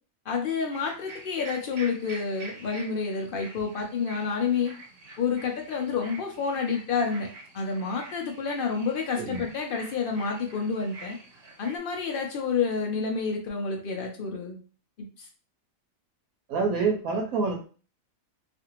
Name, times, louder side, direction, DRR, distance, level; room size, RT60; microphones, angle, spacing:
voice 1, 0.3-4.7 5.2-7.3 7.5-11.2 11.6-14.6 15.0-15.3, left 5 dB, 70° left, 2 dB, 0.5 m, -29 dB
sound 1, 0.7-11.8, right 2 dB, 55° right, 0.9 m, -46 dB
voice 2, 9.2-9.5 16.5-17.7, right 4 dB, 85° right, 2 dB, 1.0 m, -27 dB
2.5 x 2.5 x 2.9 m, 0.39 s
omnidirectional pair, 1.5 m